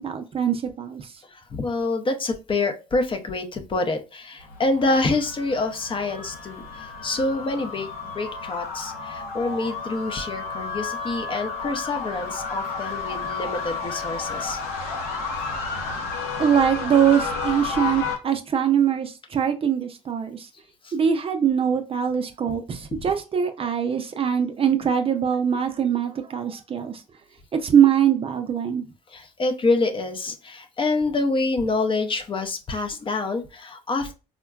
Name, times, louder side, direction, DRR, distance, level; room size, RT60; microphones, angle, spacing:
voice 1, 0.0-1.1 16.4-20.5 20.9-27.0 27.5-28.9, right 8 dB, 35° right, 0.5 m, -22 dB
voice 2, 1.2-7.9 8.1-14.6 20.8-20.9 23.0-23.1 29.1-34.1, left 3 dB, 30° left, 0.6 m, -26 dB
sound 1, 4.4-18.2, left 4 dB, 75° left, 0.7 m, -32 dB
3.7 x 2.2 x 2.2 m
hypercardioid pair, 65°, 16 cm